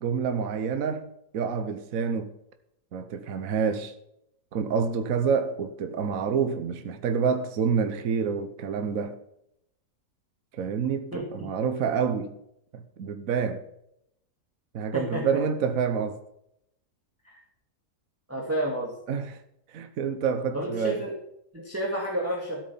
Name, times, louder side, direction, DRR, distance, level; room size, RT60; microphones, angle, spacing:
voice 1, 0.0-2.3 2.9-3.9 4.5-9.2 10.5-12.3 12.7-13.6 14.7-16.2 19.1-19.4 19.7-21.0, right 6 dB, 65° right, 1.3 m, -28 dB
voice 2, 11.1-11.5 14.9-15.2 17.2-17.4 18.3-19.0 20.5-21.1 21.5-22.6, right 1 dB, 10° right, 2.0 m, -30 dB
14.0 x 8.3 x 5.6 m
omnidirectional pair, 1.6 m